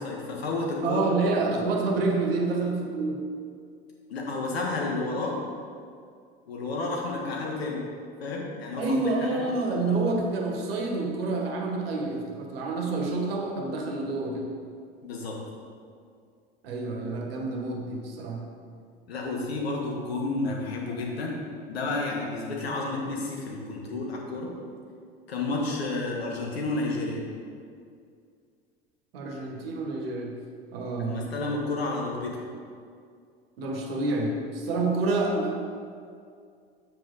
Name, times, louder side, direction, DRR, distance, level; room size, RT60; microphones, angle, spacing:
voice 1, 0.0-1.2 1.5-1.6 4.1-5.3 6.5-7.8 8.2-9.0 9.3-9.5 15.0-15.4 19.1-21.4 21.7-24.5 25.3-27.2 31.0-32.3, left 2 dB, 75° left, -1 dB, 1.7 m, -31 dB
voice 2, 0.8-3.2 8.8-14.5 16.6-18.4 29.1-30.3 30.7-31.3 33.6-35.6, right 3 dB, 70° right, 1 dB, 1.4 m, -28 dB
7.6 x 7.3 x 4.1 m, 2.2 s
figure-of-eight pair, 75°, 31 cm